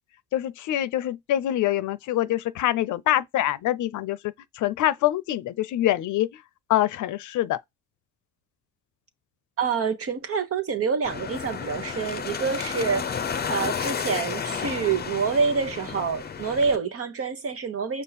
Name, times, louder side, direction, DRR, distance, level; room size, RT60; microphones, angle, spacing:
voice 1, 0.3-6.3 6.7-7.6, left 13 dB, 75° left, 0.6 m, -25 dB
voice 2, 9.6-13.2 13.5-18.0, right 5 dB, 50° right, 1.2 m, -27 dB
sound 1, 11.0-16.8, left 6 dB, 30° left, 0.7 m, -32 dB
5.4 x 2.0 x 4.2 m
cardioid pair, 90°, 30 cm